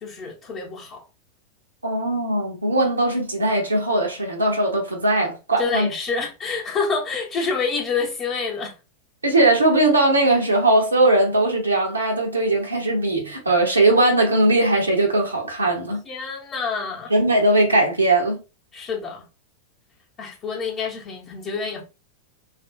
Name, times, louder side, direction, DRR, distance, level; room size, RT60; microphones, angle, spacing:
voice 1, 0.0-1.0 5.6-8.7 16.0-17.1 18.7-19.2 20.2-21.8, left 4 dB, 35° left, 0.7 m, -27 dB
voice 2, 1.8-5.9 9.2-16.0 17.1-18.4, right 2 dB, 80° right, 0.6 m, -19 dB
2.4 x 2.0 x 2.5 m
figure-of-eight pair, 90°, 0 cm